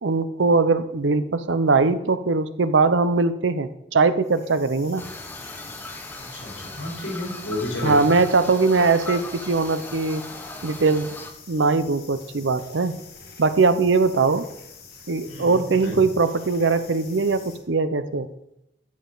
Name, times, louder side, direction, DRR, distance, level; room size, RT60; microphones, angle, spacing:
voice 1, 0.0-5.0 7.8-10.3 10.6-11.2 11.5-13.0 13.4-14.5 15.1-18.3, right 4 dB, 75° right, 12 dB, 0.7 m, -21 dB
sound 1, 4.2-17.6, left 5 dB, 55° left, 1.9 m, -46 dB
sound 2, 5.0-11.3, left 2 dB, 10° left, 0.9 m, -38 dB
voice 2, 6.2-8.1 15.3-16.0, left 1 dB, 80° left, -2 dB, 3.6 m, -31 dB
12.5 x 7.3 x 3.9 m, 0.83 s
head